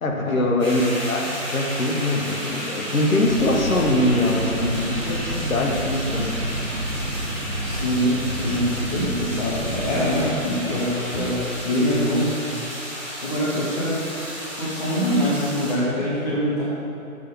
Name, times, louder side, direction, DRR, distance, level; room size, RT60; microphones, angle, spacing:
voice 1, 0.0-6.4, left 1 dB, 65° left, 0 dB, 1.4 m, -22 dB
sound 1, 0.6-15.7, equal, 5° left, 1.3 m, -33 dB
sound 2, 3.2-10.2, right 1 dB, 70° right, 1.2 m, -30 dB
voice 2, 7.6-12.3 13.2-14.0 14.6-16.6, equal, 30° left, -7 dB, 1.0 m, -24 dB
6.7 x 5.9 x 5.4 m, 2.8 s
figure-of-eight pair, 155°, 43 cm